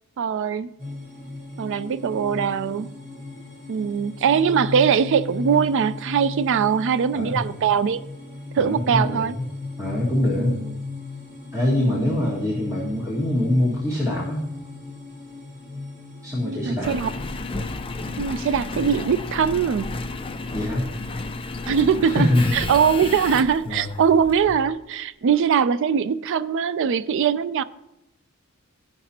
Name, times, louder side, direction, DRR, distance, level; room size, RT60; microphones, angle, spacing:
voice 1, 0.2-0.7 1.6-2.9 3.7-8.0 8.5-9.4 10.4-10.7 11.7-12.2 16.4-17.1 18.2-19.9 21.7-27.6, right 7 dB, 60° right, 0.3 m, -22 dB
sound 1, 0.8-18.1, left 3 dB, 35° right, 1.9 m, -36 dB
voice 2, 8.6-9.3 9.8-10.6 11.5-14.4 16.2-17.0 20.5-20.9 22.0-22.5 23.1-23.4 23.6-23.9, left 1 dB, 15° right, 1.9 m, -24 dB
Engine, 16.8-24.7 25.3-25.4, left 3 dB, 25° left, 0.5 m, -32 dB
16.0 x 5.9 x 2.8 m
head